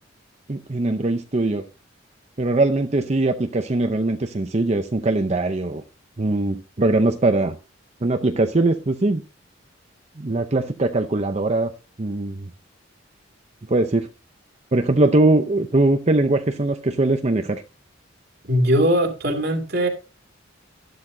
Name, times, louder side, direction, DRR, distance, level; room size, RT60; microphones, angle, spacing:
voice 1, 0.5-1.6 2.4-5.8 6.2-7.5 8.0-9.2 10.2-11.7 12.0-12.5 13.7-14.1 14.7-17.6, right 2 dB, 35° right, 7 dB, 0.6 m, -21 dB
voice 2, 18.5-19.9, equal, 50° right, 4 dB, 2.5 m, -20 dB
12.0 x 12.0 x 2.7 m, 0.30 s
head